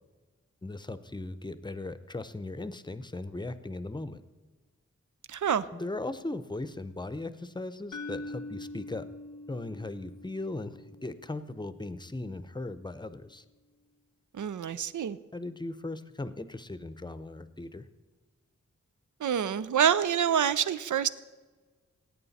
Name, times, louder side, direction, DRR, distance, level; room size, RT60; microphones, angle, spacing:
voice 1, 0.6-4.2 5.7-9.1 9.5-13.4 15.3-17.8, left 2 dB, 15° left, 13 dB, 0.6 m, -38 dB
voice 2, 5.3-5.7 14.3-15.2 19.2-21.1, right 8 dB, 85° right, 16 dB, 0.5 m, -27 dB
sound 1, 7.9-12.0, left 2 dB, 90° left, 0.6 m, -44 dB
17.0 x 8.7 x 4.1 m, 1.3 s
wide cardioid pair, 60°, 29 cm